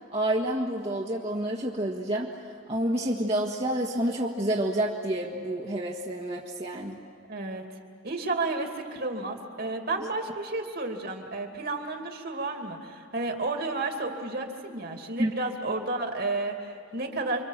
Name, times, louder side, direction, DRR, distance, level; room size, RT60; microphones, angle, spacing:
voice 1, 0.1-2.3 2.7-7.0 15.2-15.3, right 1 dB, 30° right, -2 dB, 1.6 m, -28 dB
voice 2, 7.3-7.6 8.0-17.4, right 2 dB, 50° right, 3 dB, 2.7 m, -32 dB
29.5 x 24.5 x 7.5 m, 2.2 s
head